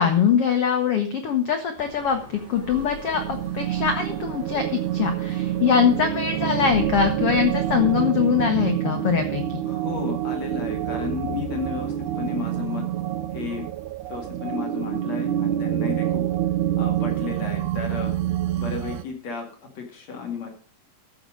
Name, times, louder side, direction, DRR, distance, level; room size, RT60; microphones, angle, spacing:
voice 1, 0.0-9.6, left 7 dB, 85° left, 6 dB, 1.3 m, -23 dB
sound 1, 1.8-7.9, left 1 dB, 5° left, 4.8 m, -41 dB
sound 2, 2.6-19.0, right 12 dB, 85° right, 1.7 m, -27 dB
voice 2, 9.6-12.8 13.3-13.6 14.1-16.2 16.8-18.2 18.6-20.5, left 5 dB, 50° left, 2 dB, 3.2 m, -33 dB
13.5 x 7.1 x 5.1 m, 0.42 s
omnidirectional pair, 4.4 m